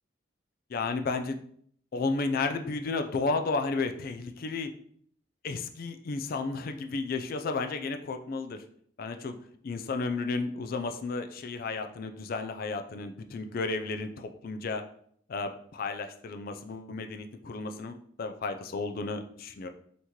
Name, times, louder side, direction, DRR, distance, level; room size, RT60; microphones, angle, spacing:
voice 1, 0.7-1.4 1.9-4.7 5.4-8.6 9.0-9.4 9.6-14.8 15.3-19.7, left 3 dB, 45° left, 7 dB, 0.3 m, -33 dB
5.6 x 2.9 x 3.1 m, 0.63 s
head